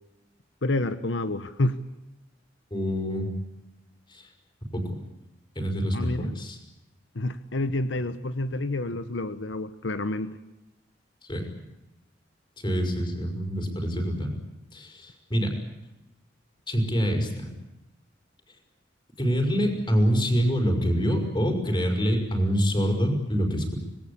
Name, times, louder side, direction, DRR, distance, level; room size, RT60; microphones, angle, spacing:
voice 1, 0.6-1.8 5.9-6.3 7.1-10.4, left 2 dB, 85° left, 11 dB, 1.1 m, -28 dB
voice 2, 2.7-3.3 4.1-4.2 4.7-4.8 5.6-6.6 11.2-11.5 12.6-14.3 14.7-15.5 16.7-17.5 19.2-23.8, equal, 25° left, 3 dB, 5.4 m, -25 dB
26.0 x 20.0 x 8.6 m, 0.98 s
head